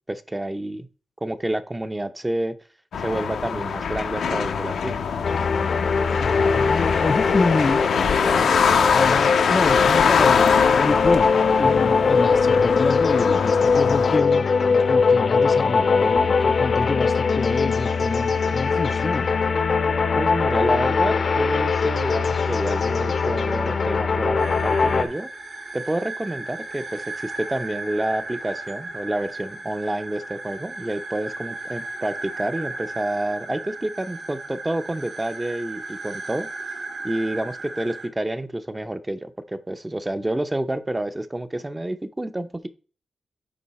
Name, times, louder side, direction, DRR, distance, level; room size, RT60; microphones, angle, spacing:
voice 1, 0.1-0.9 1.2-2.5 3.0-5.0 20.1-25.3 25.7-36.5 37.0-42.7, right 1 dB, 15° right, 0.6 m, -29 dB
sound 1, 2.9-14.2, left 6 dB, 90° left, 0.9 m, -23 dB
sound 2, 5.2-25.0, left 5 dB, 60° left, 0.8 m, -21 dB
voice 2, 6.2-7.9 8.9-19.4, left 3 dB, 35° left, 0.4 m, -27 dB
sound 3, 24.4-38.1, right 2 dB, 55° right, 2.2 m, -35 dB
10.0 x 3.8 x 4.2 m
cardioid pair, 90°, 0 cm